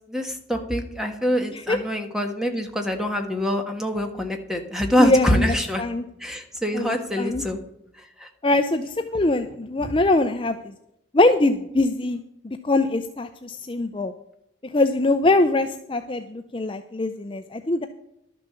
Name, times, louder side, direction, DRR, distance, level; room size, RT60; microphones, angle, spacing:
voice 1, 0.1-5.8 6.2-7.6 8.0-8.3 9.2-9.3 9.8-9.9, equal, 5° right, 4 dB, 1.4 m, -25 dB
voice 2, 5.0-6.0 6.7-7.4 8.4-10.7 11.1-12.2 12.4-14.1 14.7-17.9, left 2 dB, 25° left, 7 dB, 0.5 m, -22 dB
12.0 x 6.9 x 6.9 m, 0.80 s
head